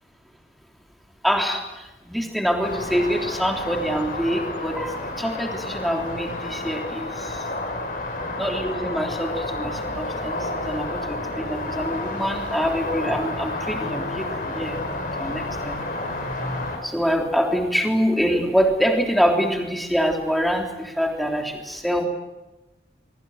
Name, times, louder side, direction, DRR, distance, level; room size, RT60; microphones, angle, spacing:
voice 1, 1.2-7.5 8.3-14.8 15.2-15.8 16.8-22.1, equal, ahead, 2 dB, 3.4 m, -25 dB
sound 1, 2.6-16.8, left 2 dB, 50° left, 5.5 m, -30 dB
25.0 x 23.0 x 8.0 m, 1.0 s
head